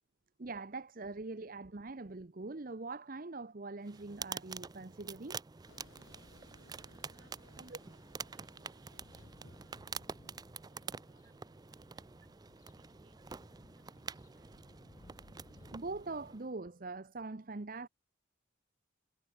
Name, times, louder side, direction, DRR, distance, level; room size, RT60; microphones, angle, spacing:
voice 1, 0.4-5.4 7.6-7.8 15.7-17.9, right 3 dB, 45° right, 0.8 m, -43 dB
sound 1, 3.8-16.5, right 5 dB, 20° right, 0.4 m, -47 dB
sound 2, 5.7-11.0, left 2 dB, 80° left, 3.5 m, -65 dB
voice 2, 7.2-10.1 10.4-12.0 12.8-13.4 13.8-14.8, right 3 dB, 60° right, 7.1 m, -74 dB
sound 3, 8.9-16.4, left 1 dB, 40° left, 1.3 m, -61 dB
head